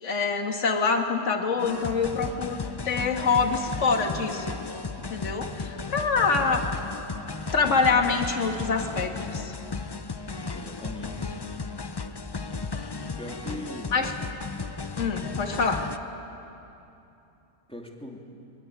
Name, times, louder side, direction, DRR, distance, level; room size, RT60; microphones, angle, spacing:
voice 1, 0.0-2.6 2.9-4.5 5.1-6.6 7.5-9.5 13.9-14.1 15.0-15.8, left 4 dB, 55° left, 4 dB, 2.1 m, -25 dB
sound 1, 1.6-16.0, left 4 dB, 35° left, 0.4 m, -35 dB
voice 2, 10.5-11.4 13.2-14.1 17.7-18.2, left 1 dB, 5° left, 0 dB, 2.5 m, -40 dB
24.5 x 22.0 x 9.1 m, 2.9 s
omnidirectional pair, 1.5 m